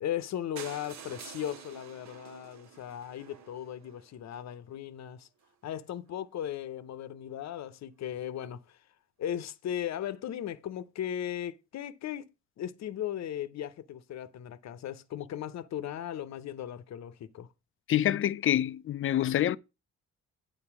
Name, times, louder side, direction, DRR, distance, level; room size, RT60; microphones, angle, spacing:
voice 1, 0.0-5.3 5.6-8.8 9.2-12.3 12.6-17.5, left 10 dB, 60° left, 0.8 m, -37 dB
sound 1, 0.6-4.4 5.1-5.2 5.4-5.5 5.8-5.9 6.1-6.2, right 7 dB, 65° right, 1.0 m, -49 dB
voice 2, 17.9-19.6, left 12 dB, 45° left, 0.4 m, -26 dB
9.0 x 4.0 x 6.0 m
cardioid pair, 90°, 30 cm